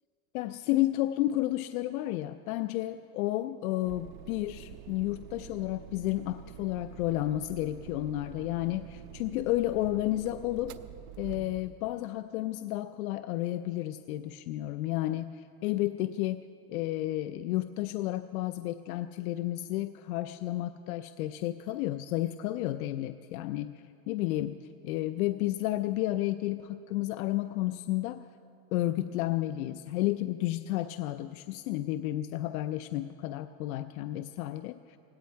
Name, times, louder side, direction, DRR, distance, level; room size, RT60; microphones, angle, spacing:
voice 1, 0.3-10.8 11.2-28.3 28.7-34.8, left 15 dB, 75° left, 11 dB, 0.6 m, -32 dB
sound 1, 3.8-11.9, right 12 dB, 70° right, 0.8 m, -47 dB
18.5 x 17.0 x 4.6 m, 2.5 s
supercardioid pair, 160°, 43 cm